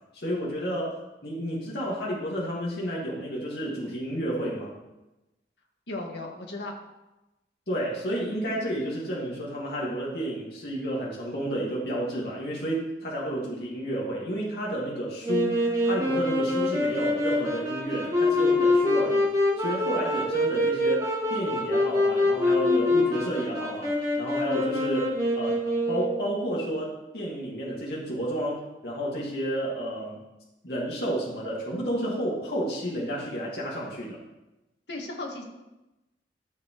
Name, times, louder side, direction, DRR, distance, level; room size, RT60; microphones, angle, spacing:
voice 1, 0.1-4.8 7.7-19.3 19.6-25.6 25.9-30.2 30.6-34.2, equal, 65° left, -5 dB, 2.0 m, -31 dB
voice 2, 5.9-6.7 34.9-35.4, left 2 dB, 80° left, 1 dB, 1.7 m, -35 dB
Wind instrument woodwind instrument, 15.2-26.4, left 1 dB, 20° right, 2.5 m, -25 dB
13.5 x 6.8 x 3.1 m, 1.0 s
head